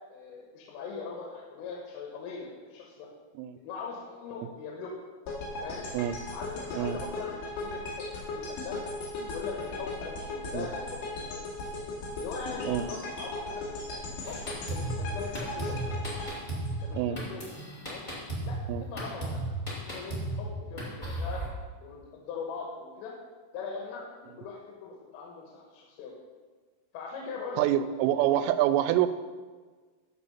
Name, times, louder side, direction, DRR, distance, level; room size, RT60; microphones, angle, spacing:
voice 1, 0.1-3.1 3.6-4.9 5.6-5.9 6.3-8.8 9.3-11.4 12.2-14.4 14.7-16.0 16.8-17.5 17.9-18.0 18.5-18.6 18.9-19.4 19.8-21.4 21.8-23.1 23.5-26.1 26.9-28.5, left 5 dB, 85° left, -2 dB, 3.8 m, -41 dB
sound 1, 5.3-17.4, left 2 dB, 65° left, 4.0 m, -37 dB
Drum kit, 14.2-21.5, right 1 dB, 35° left, 0.7 m, -35 dB
voice 2, 27.6-29.1, right 12 dB, 85° right, 12 dB, 3.1 m, -26 dB
14.0 x 4.6 x 5.6 m, 1.4 s
omnidirectional pair, 5.7 m